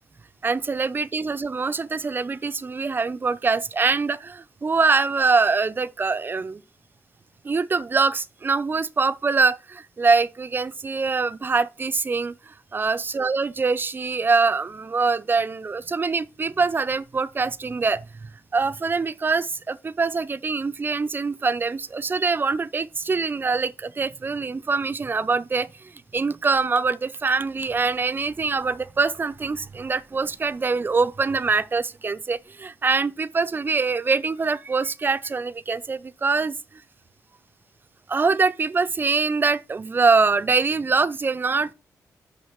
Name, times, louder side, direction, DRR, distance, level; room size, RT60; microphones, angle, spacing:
voice 1, 0.4-6.6 7.4-25.7 26.1-36.6 38.1-41.7, right 4 dB, 35° right, 0.6 m, -24 dB
6.3 x 5.0 x 5.8 m
cardioid pair, 75°, 6 cm